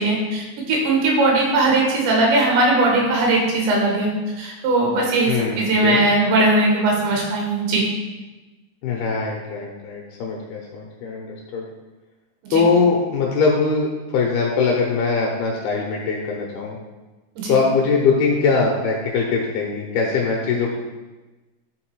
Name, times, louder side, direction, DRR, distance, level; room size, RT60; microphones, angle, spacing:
voice 1, 0.0-4.1 4.4-7.8 12.4-12.6 17.4-17.6, right 2 dB, 80° right, -2 dB, 3.7 m, -19 dB
voice 2, 5.2-6.0 8.8-11.6 12.5-16.8 17.5-20.7, left 4 dB, 80° left, -1 dB, 2.4 m, -21 dB
10.5 x 3.6 x 4.7 m, 1.2 s
omnidirectional pair, 5.2 m